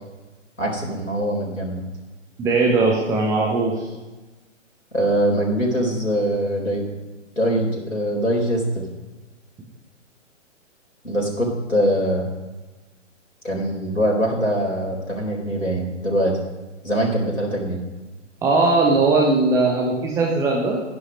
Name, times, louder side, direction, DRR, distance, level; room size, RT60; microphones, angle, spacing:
voice 1, 0.6-1.8 4.9-6.8 7.4-8.8 11.0-12.3 13.4-16.4 16.8-17.8, equal, 85° left, -2 dB, 4.1 m, -22 dB
voice 2, 2.4-3.9 18.4-20.8, right 3 dB, 10° right, -2 dB, 1.1 m, -19 dB
12.0 x 10.5 x 5.2 m, 1.2 s
figure-of-eight pair, 130°, 38 cm